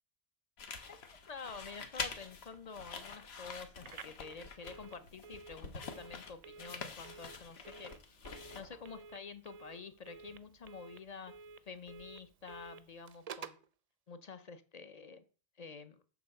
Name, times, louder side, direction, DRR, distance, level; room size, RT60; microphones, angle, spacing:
sound 1, 0.6-8.9, left 5 dB, 80° left, 1.2 m, -46 dB
voice 1, 1.3-7.9 8.5-11.3 11.6-13.6 14.1-15.2 15.6-16.0, left 5 dB, 45° left, 11 dB, 0.6 m, -49 dB
Telephone, 3.8-13.7, right 5 dB, 50° right, 0.5 m, -53 dB
6.9 x 3.9 x 6.4 m, 0.38 s
omnidirectional pair, 1.0 m